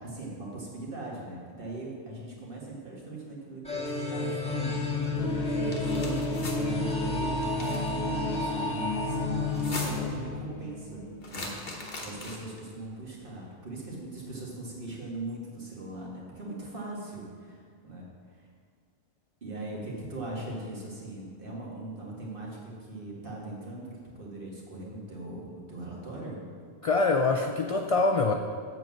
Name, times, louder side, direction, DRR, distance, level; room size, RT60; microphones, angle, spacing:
voice 1, 0.0-6.2 6.5-11.0 11.3-11.5 12.0-18.1 18.4-18.5 19.4-26.4, right 2 dB, 50° right, -4 dB, 2.0 m, -40 dB
sound 1, 3.6-10.6, left 2 dB, 5° left, 1.8 m, -31 dB
sound 2, 5.2-12.2, left 2 dB, 80° left, 1.2 m, -35 dB
sound 3, 5.6-6.6 7.4-7.9 9.4-10.2 11.2-12.6, left 2 dB, 45° left, 1.3 m, -39 dB
voice 2, 26.8-28.3, left 3 dB, 65° left, 4 dB, 0.3 m, -24 dB
7.8 x 4.6 x 7.2 m, 2.2 s
omnidirectional pair, 1.1 m